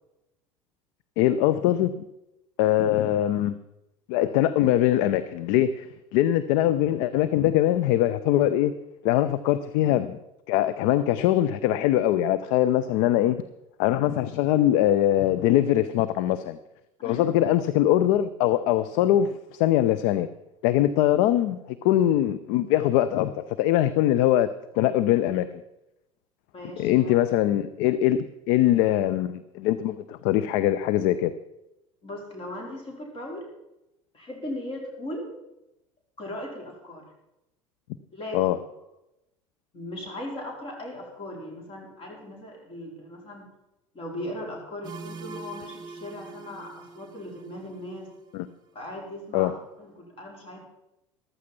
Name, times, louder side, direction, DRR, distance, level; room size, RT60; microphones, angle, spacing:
voice 1, 1.2-2.0 2.6-3.5 4.1-5.9 6.1-8.7 9.0-10.2 10.5-13.4 13.8-16.6 17.0-20.3 20.6-25.5 26.8-31.3 38.3-38.6 48.3-48.5 49.3-49.5, left 12 dB, 50° left, 14 dB, 0.6 m, -22 dB
voice 2, 26.5-27.2 32.0-33.4 34.1-35.3 36.2-37.1 38.1-38.6 39.7-43.5 43.9-48.1 48.7-49.5 49.8-50.6, left 1 dB, 35° left, 0 dB, 4.4 m, -38 dB
sound 1, 44.8-48.5, right 4 dB, 25° right, 1.8 m, -44 dB
14.5 x 12.5 x 4.4 m, 0.91 s
figure-of-eight pair, 70°, 17 cm